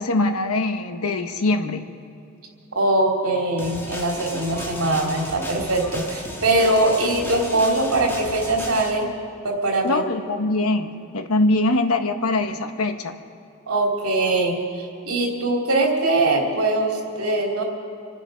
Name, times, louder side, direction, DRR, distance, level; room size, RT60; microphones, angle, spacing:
voice 1, 0.0-1.9 9.8-13.2, left 2 dB, 85° left, 7 dB, 1.1 m, -23 dB
voice 2, 2.7-9.1 9.4-10.1 13.7-17.6, right 2 dB, 90° right, 0 dB, 3.2 m, -22 dB
sound 1, 3.6-8.9, equal, 10° left, 1.9 m, -35 dB
26.5 x 10.5 x 5.1 m, 2.7 s
head